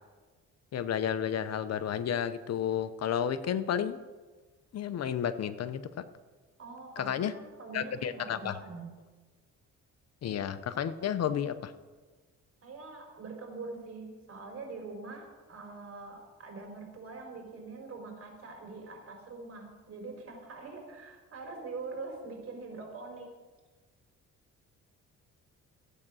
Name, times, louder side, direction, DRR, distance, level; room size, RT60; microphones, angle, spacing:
voice 1, 0.7-4.0 4.7-5.8 7.0-7.3 7.7-8.5 10.2-11.7, left 9 dB, 55° left, 13 dB, 0.8 m, -31 dB
voice 2, 6.6-8.9 12.6-23.3, right 3 dB, 50° right, 2 dB, 4.6 m, -44 dB
15.0 x 8.8 x 6.2 m, 1.3 s
cardioid pair, 90°, 30 cm